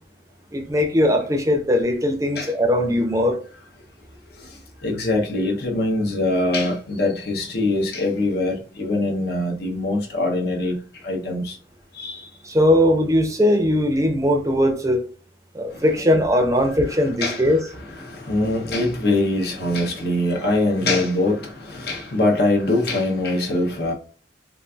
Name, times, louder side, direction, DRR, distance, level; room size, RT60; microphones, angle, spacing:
voice 1, 0.5-3.4 12.4-15.0 15.5-17.6, left 1 dB, 20° right, 0.5 m, -19 dB
voice 2, 4.8-10.8 11.0-11.6 11.9-12.2 16.1-16.3 16.9-23.9, left 2 dB, 60° left, 0.8 m, -23 dB
3.9 x 2.4 x 2.3 m
head